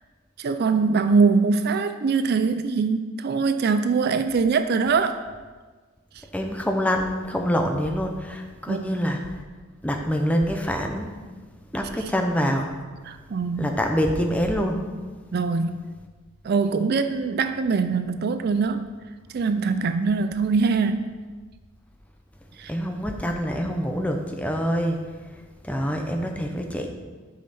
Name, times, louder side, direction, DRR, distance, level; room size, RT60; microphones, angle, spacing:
voice 1, 0.4-5.2 8.7-8.8 12.0-12.1 13.1-13.7 15.3-15.8 16.4-18.9 19.3-21.1 22.6-22.7, right 4 dB, 50° right, 9 dB, 0.4 m, -23 dB
voice 2, 6.3-9.2 9.8-11.1 11.7-12.7 13.6-14.8 22.7-25.0 25.6-26.9, equal, 5° left, 3 dB, 0.6 m, -25 dB
9.5 x 5.5 x 4.2 m, 1.4 s
head